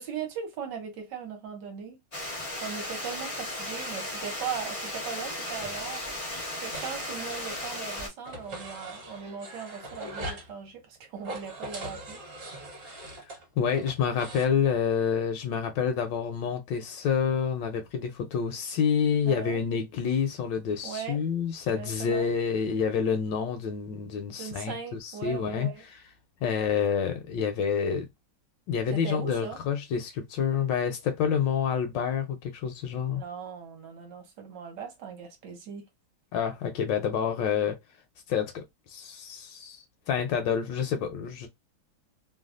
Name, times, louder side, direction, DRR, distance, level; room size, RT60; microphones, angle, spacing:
voice 1, 0.0-2.0 2.6-6.0 6.6-12.2 19.2-19.6 20.8-21.2 21.7-22.3 24.4-25.8 28.9-29.6 33.1-35.8, right 7 dB, 65° right, 1.3 m, -39 dB
Water, 2.1-8.1, left 1 dB, 55° left, 0.3 m, -35 dB
sound 1, 6.7-8.0 8.3-10.5 11.2-14.5, right 1 dB, 50° right, 1.2 m, -41 dB
voice 2, 13.6-25.7 26.4-28.1 28.7-33.2 36.3-37.8 38.3-41.5, left 7 dB, 75° left, 1.1 m, -28 dB
3.2 x 2.3 x 2.4 m
omnidirectional pair, 2.2 m